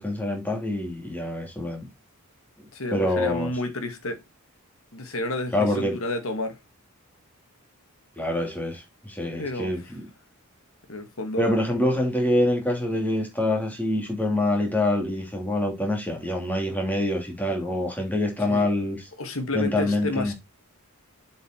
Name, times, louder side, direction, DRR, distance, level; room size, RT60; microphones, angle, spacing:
voice 1, 0.0-1.9 2.6-3.5 5.5-6.0 8.2-10.1 11.4-19.1 19.5-20.3, left 1 dB, 10° left, 3.0 m, -26 dB
voice 2, 2.7-4.2 4.9-6.6 9.4-9.7 10.9-11.6 18.5-18.7 19.2-20.3, left 2 dB, 65° left, 2.0 m, -30 dB
7.6 x 5.4 x 4.5 m
head